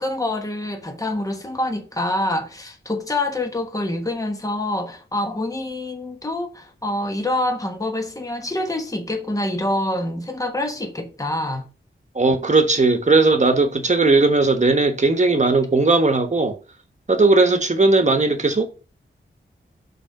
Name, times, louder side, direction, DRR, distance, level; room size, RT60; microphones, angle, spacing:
voice 1, 0.0-11.7, left 1 dB, 15° left, 1.2 m, -26 dB
voice 2, 12.1-16.6 17.1-18.7, right 3 dB, 35° right, 1.3 m, -17 dB
5.7 x 4.1 x 5.4 m
wide cardioid pair, 80°, 20 cm